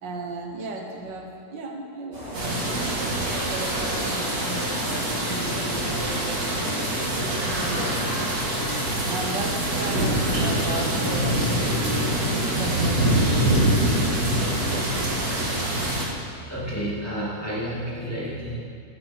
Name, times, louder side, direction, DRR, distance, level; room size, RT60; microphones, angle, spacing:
voice 1, 0.0-4.4 4.9-7.9 9.0-15.0, right 3 dB, 80° right, 1 dB, 1.9 m, -36 dB
sound 1, 2.1-16.8, right 1 dB, 20° right, 3.4 m, -42 dB
sound 2, 2.3-16.0, right 1 dB, 55° right, 2.5 m, -24 dB
voice 2, 16.3-18.6, equal, 10° left, -8 dB, 2.3 m, -30 dB
15.0 x 9.0 x 4.5 m, 2.2 s
omnidirectional pair, 1.9 m